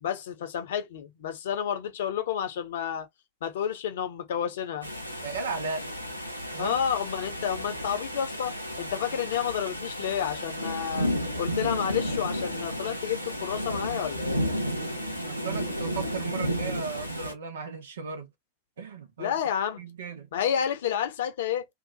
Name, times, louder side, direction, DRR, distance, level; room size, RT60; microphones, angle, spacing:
voice 1, 0.0-3.1 3.4-4.9 6.6-11.1 11.4-14.4 19.2-19.8 20.3-21.7, left 9 dB, 60° left, 0.9 m, -30 dB
sound 1, 4.8-17.3, equal, 90° right, 0.8 m, -32 dB
voice 2, 5.2-5.9 6.5-6.8 15.2-18.3 18.8-19.4 19.8-20.3, right 5 dB, 65° right, 1.1 m, -36 dB
2.8 x 2.6 x 4.0 m
figure-of-eight pair, 90°, 0 cm